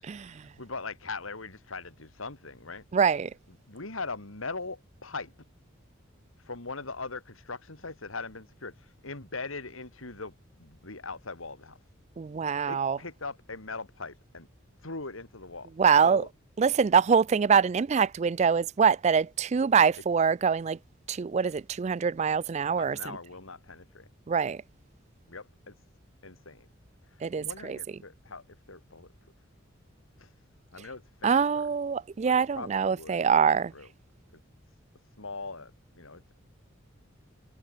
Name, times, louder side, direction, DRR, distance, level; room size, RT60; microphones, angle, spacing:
voice 1, 0.0-2.8 3.5-5.3 6.4-11.8 12.7-14.5 14.8-15.7 16.0-16.3 22.8-24.1 25.3-25.7 26.2-26.7 27.1-29.1 30.2-30.3 30.7-31.7 32.2-33.2 33.5-33.9 34.3-34.4 35.2-36.3, left 3 dB, 85° left, 3.1 m, -41 dB
voice 2, 2.9-3.3 12.2-13.0 15.8-16.2 16.6-20.8 21.1-23.0 24.3-24.6 27.2-27.8 31.2-33.7, right 6 dB, 35° right, 0.3 m, -24 dB
head